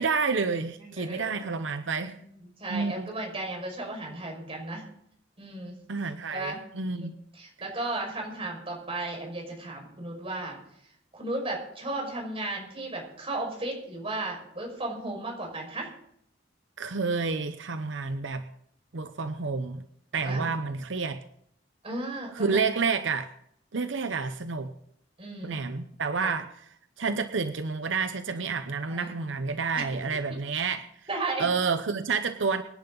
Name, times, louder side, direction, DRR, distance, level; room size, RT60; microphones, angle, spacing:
voice 1, 0.0-2.2 2.7-3.1 5.9-7.1 16.8-18.5 18.9-19.8 20.1-21.2 22.3-23.3 23.7-24.7 25.4-26.5 27.0-30.9 31.4-32.6, right 4 dB, 85° right, 10 dB, 0.8 m, -29 dB
voice 2, 0.8-1.6 2.2-2.3 2.6-4.8 5.4-5.7 6.3-6.6 6.9-7.1 7.3-10.6 11.1-15.9 20.2-20.6 21.8-22.7 25.2-25.6 26.2-26.3 28.9-29.1 31.1-31.5, right 2 dB, 30° right, 1 dB, 5.5 m, -35 dB
24.5 x 10.5 x 3.9 m, 0.71 s
head